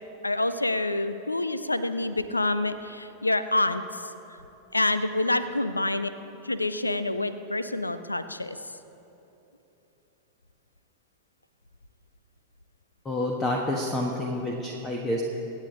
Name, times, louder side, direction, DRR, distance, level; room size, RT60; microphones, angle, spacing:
voice 1, 0.2-4.1 4.7-6.1 6.4-8.6, left 2 dB, 85° left, 12 dB, 0.6 m, -27 dB
voice 2, 13.0-15.2, left 1 dB, 20° left, 0 dB, 1.3 m, -28 dB
25.5 x 8.7 x 3.8 m, 3.0 s
figure-of-eight pair, 90°, 0 cm